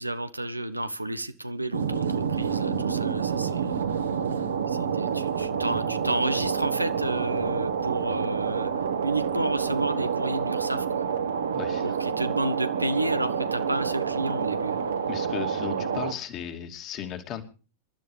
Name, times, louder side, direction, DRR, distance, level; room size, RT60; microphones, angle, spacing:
voice 1, 0.0-3.9 4.7-8.7 9.0-11.0 11.8-14.8, right 2 dB, 85° right, 11 dB, 1.1 m, -31 dB
sound 1, 1.7-16.1, right 7 dB, 70° right, 1.7 m, -28 dB
voice 2, 11.5-12.0 15.1-17.4, left 9 dB, 35° left, 5 dB, 2.8 m, -36 dB
27.0 x 12.5 x 3.4 m, 0.37 s
figure-of-eight pair, 90°, 0 cm